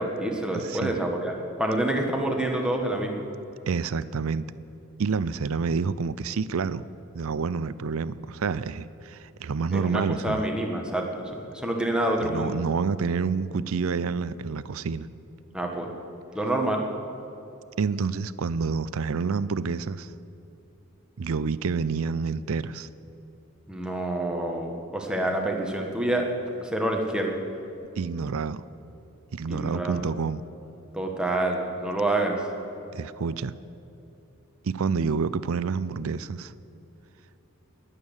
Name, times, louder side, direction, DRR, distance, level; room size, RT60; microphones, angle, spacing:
voice 1, 0.0-3.2 9.7-12.6 15.5-15.9 16.3-16.8 23.7-26.3 26.6-27.4 29.5-30.0 30.9-32.5, right 1 dB, 5° right, 1 dB, 1.5 m, -27 dB
voice 2, 0.5-1.0 3.7-4.5 5.0-6.8 7.1-10.4 12.2-15.1 17.8-20.1 21.2-22.9 28.0-28.6 29.3-30.4 32.9-33.5 34.6-36.5, right 5 dB, 75° right, 16 dB, 0.5 m, -28 dB
20.5 x 8.5 x 7.1 m, 2.8 s
head